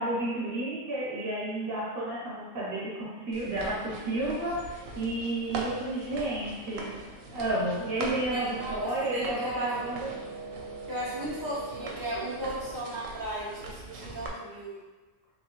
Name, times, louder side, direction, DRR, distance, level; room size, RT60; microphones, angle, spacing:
voice 1, 0.0-6.9 7.3-10.1, right 1 dB, 45° right, -7 dB, 1.4 m, -31 dB
sound 1, 3.3-14.3, right 2 dB, 85° right, 1.0 m, -42 dB
Wind instrument woodwind instrument, 7.4-13.1, right 3 dB, 65° right, 1.3 m, -42 dB
voice 2, 8.3-9.7 10.9-14.8, right 1 dB, 15° right, -10 dB, 1.0 m, -36 dB
3.7 x 3.5 x 2.9 m, 1.2 s
omnidirectional pair, 1.3 m